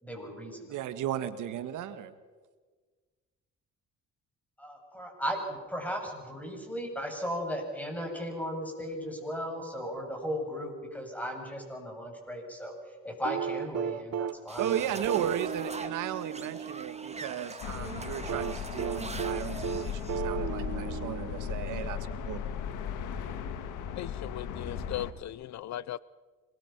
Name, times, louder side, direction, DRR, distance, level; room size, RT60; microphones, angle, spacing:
voice 1, 0.0-0.8 4.6-12.7 13.0-15.0, equal, 5° left, 1 dB, 7.6 m, -36 dB
voice 2, 0.7-2.1 14.6-22.4, right 10 dB, 85° right, 11 dB, 1.5 m, -35 dB
sound 1, 13.2-17.3 18.3-21.9 23.3-23.4, right 8 dB, 60° right, 0.9 m, -35 dB
sound 2, 14.5-20.2, right 3 dB, 20° right, 1.9 m, -42 dB
sound 3, 17.6-25.1, left 8 dB, 90° left, 1.8 m, -36 dB
voice 3, 24.0-26.0, left 13 dB, 65° left, 20 dB, 0.6 m, -38 dB
26.5 x 21.5 x 6.0 m, 1.4 s
cardioid pair, 90°, 30 cm